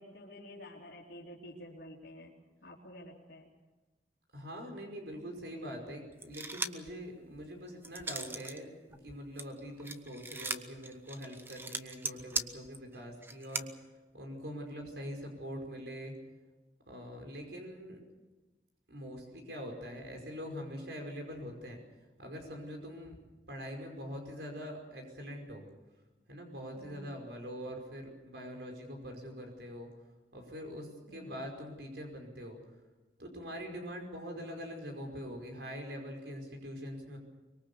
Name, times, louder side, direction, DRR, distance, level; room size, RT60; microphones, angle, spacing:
voice 1, 0.0-2.4 2.6-3.5 17.7-18.0 26.8-27.1 31.1-31.3 33.7-33.9, left 1 dB, 85° left, -5 dB, 3.6 m, -50 dB
voice 2, 4.3-13.9 14.1-16.1 16.9-18.0 18.9-21.8 22.2-23.1 23.5-25.6 26.3-29.9 30.3-32.6 33.2-37.2, equal, 80° right, 2 dB, 5.2 m, -43 dB
sound 1, 6.2-6.9 7.3-8.6 8.9-13.6, right 3 dB, 15° right, 0.9 m, -39 dB
24.0 x 22.5 x 6.9 m, 1.2 s
head